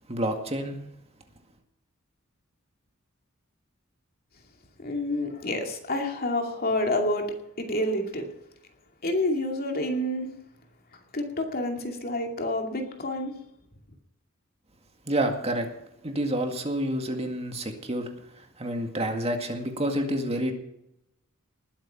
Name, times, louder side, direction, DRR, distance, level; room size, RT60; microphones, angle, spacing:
voice 1, 0.1-0.8 15.1-15.7 16.0-18.1 18.6-20.5, right 1 dB, 30° right, 4 dB, 2.0 m, -28 dB
voice 2, 4.8-7.3 7.6-8.3 9.0-10.3 11.1-13.3, left 1 dB, 45° left, 3 dB, 2.4 m, -28 dB
20.0 x 8.7 x 5.7 m, 0.83 s
head